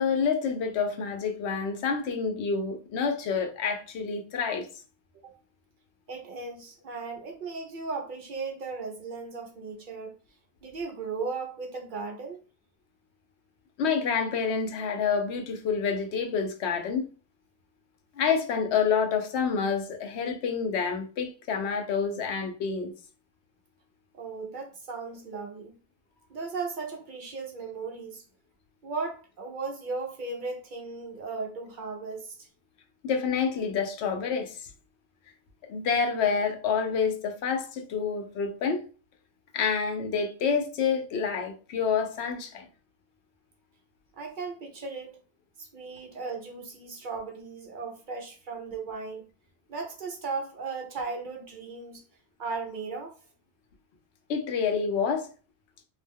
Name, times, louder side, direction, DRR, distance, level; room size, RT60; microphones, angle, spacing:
voice 1, 0.0-4.7 13.8-17.1 18.2-22.9 33.0-34.7 35.7-38.8 39.5-42.7 54.3-55.3, left 6 dB, 85° left, 0.9 m, -28 dB
voice 2, 6.1-10.1 10.6-12.4 24.1-25.7 26.3-28.2 28.8-32.5 44.1-45.2 45.6-49.3 49.7-52.0 52.4-53.2, right 4 dB, 60° right, 0.6 m, -36 dB
2.4 x 2.1 x 3.4 m
omnidirectional pair, 1.1 m